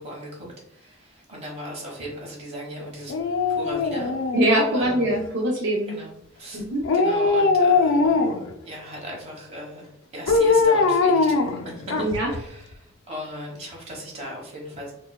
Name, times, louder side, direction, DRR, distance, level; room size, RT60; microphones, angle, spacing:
voice 1, 0.0-3.1 3.5-4.2 4.7-5.1 5.9-6.6 6.9-8.3 8.6-11.9 12.2-14.9, equal, 35° right, -2 dB, 1.1 m, -37 dB
Dog, 3.1-5.1 6.8-8.5 10.3-12.4 12.7-12.8, left 4 dB, 65° left, 0.4 m, -21 dB
voice 2, 4.3-5.9 6.5-6.8 12.0-12.3, right 1 dB, 60° right, -2 dB, 0.5 m, -23 dB
4.2 x 2.2 x 2.2 m, 0.77 s
head